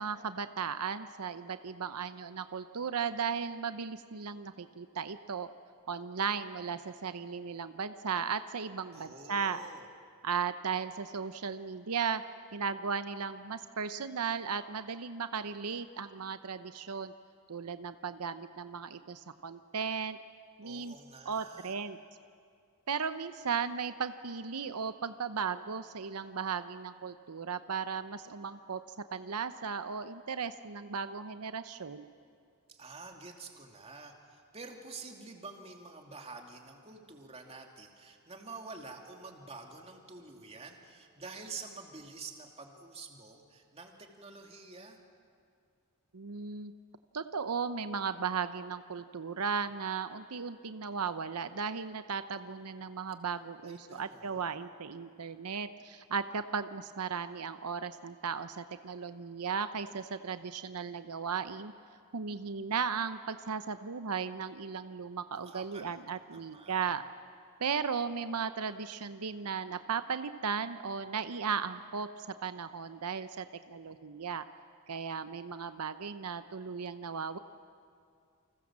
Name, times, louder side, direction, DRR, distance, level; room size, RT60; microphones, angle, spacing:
voice 1, 0.0-5.5 5.9-9.6 10.2-12.2 12.5-17.1 17.5-20.2 20.6-20.9 21.2-22.0 22.9-28.8 29.1-32.1 46.1-46.7 47.1-61.7 62.1-67.0 67.6-74.4 74.9-77.4, right 6 dB, 90° right, 11 dB, 0.8 m, -36 dB
voice 2, 8.9-9.9 20.6-21.7 32.7-45.0 53.6-54.5 65.5-66.0 66.3-66.9, right 3 dB, 25° right, 2 dB, 2.6 m, -48 dB
29.0 x 25.5 x 7.4 m, 2.3 s
head